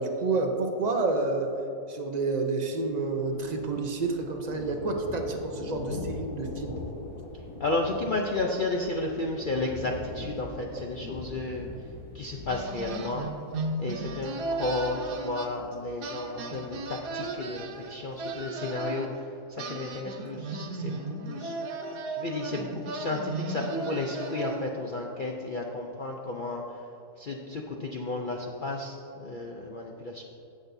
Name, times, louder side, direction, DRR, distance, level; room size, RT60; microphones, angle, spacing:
voice 1, 0.0-1.5 1.9-6.8, right 3 dB, 55° right, 3 dB, 0.4 m, -29 dB
Thunder, 2.8-18.4, left 2 dB, 70° left, 1.7 m, -42 dB
voice 2, 7.6-11.7 12.1-13.3 13.8-21.6 22.1-26.8 27.2-30.2, left 2 dB, 90° left, 0 dB, 0.4 m, -33 dB
sound 1, 12.5-15.7 16.0-19.1 19.6-24.8, right 2 dB, 85° right, 1.5 m, -35 dB
15.5 x 6.3 x 2.6 m, 2.9 s
omnidirectional pair, 1.7 m